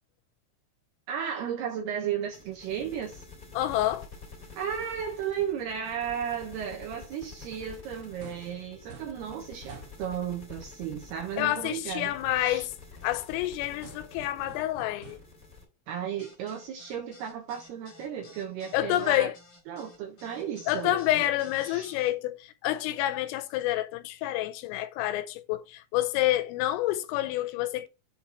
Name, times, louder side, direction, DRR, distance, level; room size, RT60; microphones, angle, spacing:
voice 1, 1.1-3.2 4.6-12.7 15.9-19.3 19.7-21.3 21.6-21.9, right 8 dB, 70° right, 2.6 m, -34 dB
sound 1, 2.3-15.6, left 4 dB, 25° left, 2.4 m, -49 dB
voice 2, 3.5-4.1 11.4-12.7 13.0-15.2 18.7-19.4 20.7-27.9, left 14 dB, 85° left, 3.2 m, -28 dB
sound 2, 8.2-8.6 8.9-9.2 9.7-10.0 13.8-15.4, right 5 dB, 50° right, 2.4 m, -49 dB
sound 3, 16.2-22.1, left 2 dB, 45° left, 1.4 m, -54 dB
7.7 x 4.3 x 4.4 m
omnidirectional pair, 5.9 m